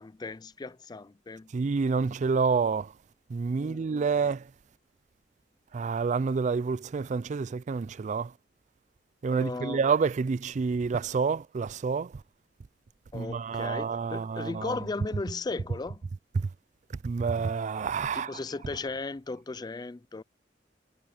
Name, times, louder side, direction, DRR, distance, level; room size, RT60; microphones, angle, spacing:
voice 1, 0.0-1.5 3.5-4.3 9.3-9.8 13.1-16.0 18.1-20.2, left 3 dB, 25° left, 0.4 m, -37 dB
voice 2, 1.5-2.9 3.3-4.4 5.7-8.3 9.2-12.1 13.1-14.7 17.0-18.3, right 5 dB, 45° right, 0.3 m, -28 dB
head